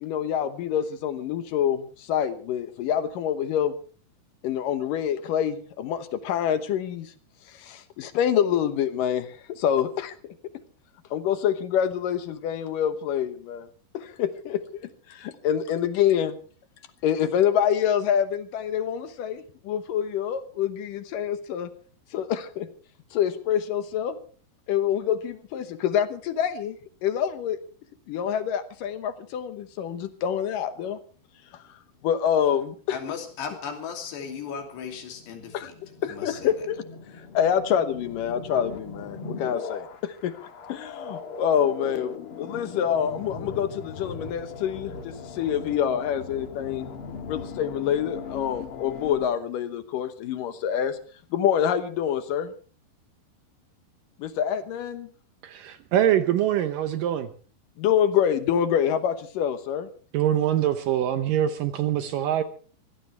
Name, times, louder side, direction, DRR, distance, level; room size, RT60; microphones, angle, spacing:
voice 1, 0.0-3.7 4.4-7.1 7.5-10.3 11.1-13.7 13.9-14.6 15.1-16.4 17.0-21.7 22.1-22.7 23.1-24.2 24.7-26.8 27.0-27.6 28.1-31.0 32.0-33.0 35.5-35.7 36.0-36.8 37.3-40.3 40.7-42.1 42.4-46.9 47.3-51.0 51.3-52.5 54.2-55.1 57.8-59.9, left 9 dB, 70° left, 11 dB, 2.4 m, -26 dB
sound 1, 32.8-49.3, left 5 dB, 50° left, 1.7 m, -40 dB
voice 2, 32.9-35.7 36.0-36.5, left 6 dB, 85° left, 4 dB, 5.0 m, -36 dB
voice 3, 55.4-57.3 60.1-62.4, right 11 dB, 75° right, 10 dB, 2.2 m, -24 dB
24.0 x 16.0 x 3.4 m, 0.40 s
omnidirectional pair, 4.7 m